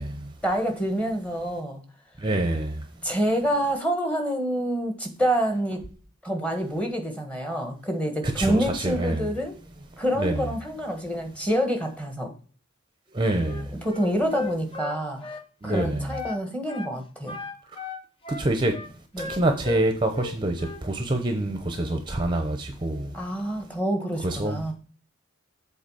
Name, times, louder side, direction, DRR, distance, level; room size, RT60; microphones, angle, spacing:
voice 1, 0.4-1.8 3.0-5.8 6.2-9.5 10.0-12.3 13.8-17.4 19.1-19.3 23.1-24.7, equal, 5° left, 1.4 m, -27 dB
voice 2, 2.2-2.8 8.2-9.3 10.2-10.5 13.1-13.8 15.6-16.1 18.3-18.7 19.3-23.1 24.2-24.5, right 1 dB, 20° right, 0.8 m, -26 dB
Wind instrument woodwind instrument, 13.4-16.4 16.7-16.9 17.3-19.8 20.1-20.8, left 4 dB, 25° left, 0.8 m, -37 dB
7.8 x 4.0 x 5.5 m
head